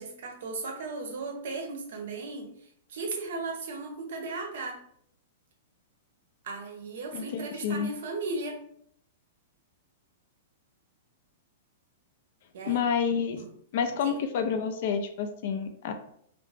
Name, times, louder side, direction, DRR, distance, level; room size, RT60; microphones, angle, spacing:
voice 1, 0.0-2.5 2.9-4.8 6.4-8.6 12.5-12.8 13.4-13.5 14.0-14.1, right 3 dB, 65° right, 3 dB, 0.6 m, -36 dB
voice 2, 7.1-7.9 12.7-13.4 13.7-15.9, left 6 dB, 50° left, 7 dB, 0.4 m, -29 dB
2.4 x 2.1 x 3.2 m, 0.68 s
supercardioid pair, 165°, 0 cm